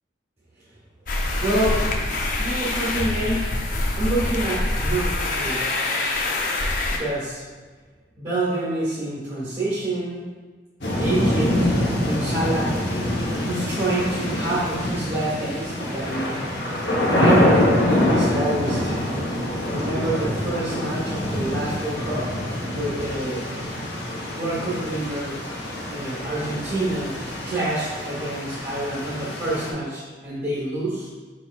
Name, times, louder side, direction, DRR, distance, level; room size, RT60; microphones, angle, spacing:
sound 1, 1.1-7.0, left 2 dB, 45° left, 0.5 m, -25 dB
voice 1, 1.4-1.9 2.4-3.6 4.0-5.6 6.9-7.4 8.2-10.3 10.9-11.7 12.0-12.8 13.4-16.4 17.0-17.7 18.1-19.0 19.7-22.3 22.7-23.4 24.3-25.4 25.9-27.2 27.5-31.1, right 1 dB, 35° right, -8 dB, 1.1 m, -27 dB
sound 2, 10.8-29.7, left 1 dB, 65° left, 0.9 m, -25 dB
5.0 x 4.4 x 2.3 m, 1.3 s
head